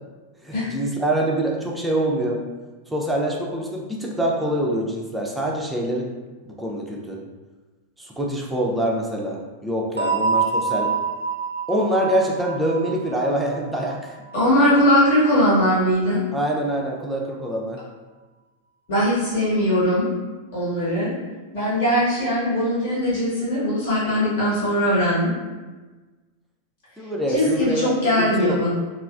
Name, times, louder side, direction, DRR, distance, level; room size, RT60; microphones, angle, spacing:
voice 1, 0.4-2.4 2.9-6.1 6.5-7.2 8.0-10.9 11.7-14.1 16.3-17.8 27.0-27.9 28.2-28.6, right 1 dB, 5° right, -2 dB, 0.5 m, -25 dB
sound 1, 10.0-14.6, right 5 dB, 80° right, 0.3 m, -26 dB
voice 2, 14.3-16.2 18.9-20.1 20.5-21.1 21.5-25.3 27.3-28.8, equal, 50° left, -8 dB, 1.3 m, -20 dB
3.1 x 2.4 x 2.4 m, 1.3 s
figure-of-eight pair, 90°, 0 cm